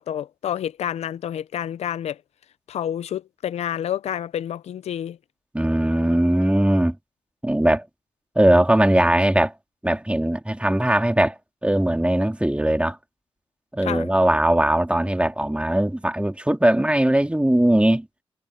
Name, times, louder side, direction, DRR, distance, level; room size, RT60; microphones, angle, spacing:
voice 1, 0.0-2.2 2.7-5.2 13.8-14.1, left 10 dB, 85° left, 0.5 m, -29 dB
voice 2, 5.5-7.0 7.4-7.8 8.3-9.5 9.8-11.3 11.6-13.0 13.7-18.1, right 1 dB, 10° right, 2.8 m, -20 dB
supercardioid pair, 45°, 11 cm